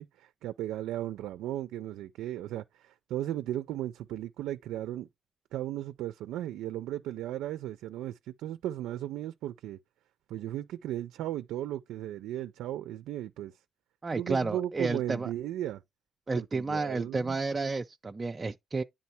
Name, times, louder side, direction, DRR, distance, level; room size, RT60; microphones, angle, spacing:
voice 1, 0.0-5.1 5.5-9.8 10.3-13.5 14.1-15.8 16.3-17.4, right 12 dB, 90° right, 0.4 m, -36 dB
voice 2, 14.0-15.3 16.3-18.8, right 3 dB, 30° right, 0.4 m, -31 dB
9.5 x 3.7 x 4.3 m
cardioid pair, 90°, 0 cm